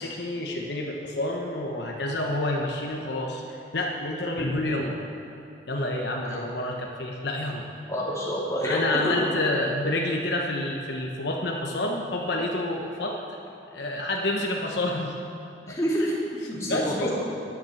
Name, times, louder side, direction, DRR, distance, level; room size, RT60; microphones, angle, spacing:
voice 1, 0.0-5.0 5.7-7.7 8.6-13.2 13.7-15.1 15.6-15.8 16.7-17.1, left 1 dB, 70° left, 0 dB, 1.1 m, -28 dB
voice 2, 7.9-9.1 15.7-16.2 16.5-17.1, equal, 15° left, -6 dB, 2.6 m, -27 dB
10.5 x 9.6 x 7.2 m, 2.5 s
head